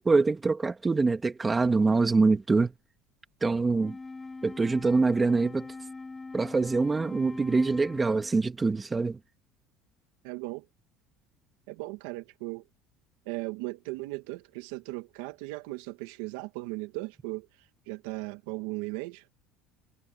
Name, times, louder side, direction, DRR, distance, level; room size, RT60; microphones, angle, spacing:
voice 1, 0.0-2.7 3.4-4.0 4.4-5.7 6.3-9.2, right 3 dB, 15° right, 2.2 m, -24 dB
Wind instrument woodwind instrument, 3.7-8.5, left 3 dB, 15° left, 4.7 m, -42 dB
voice 2, 10.2-10.7 11.7-12.7 13.3-17.5 17.9-19.3, right 21 dB, 85° right, 2.0 m, -37 dB
cardioid pair, 120°, 0 cm